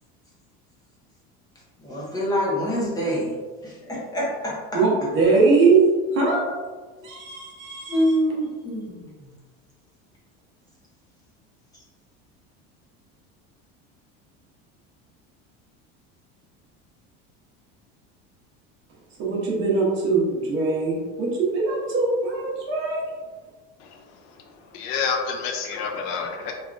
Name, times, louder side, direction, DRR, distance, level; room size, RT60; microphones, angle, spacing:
voice 1, 1.8-3.3 3.6-4.8 7.0-7.1 7.9-9.0 11.7-11.8, equal, 15° left, -6 dB, 0.6 m, -26 dB
voice 2, 4.7-6.5 7.0-8.1 19.2-23.0, right 4 dB, 40° right, -4 dB, 0.8 m, -21 dB
voice 3, 24.7-26.5, left 5 dB, 70° left, 3 dB, 0.5 m, -28 dB
3.3 x 2.4 x 2.4 m, 1.4 s
cardioid pair, 165°, 29 cm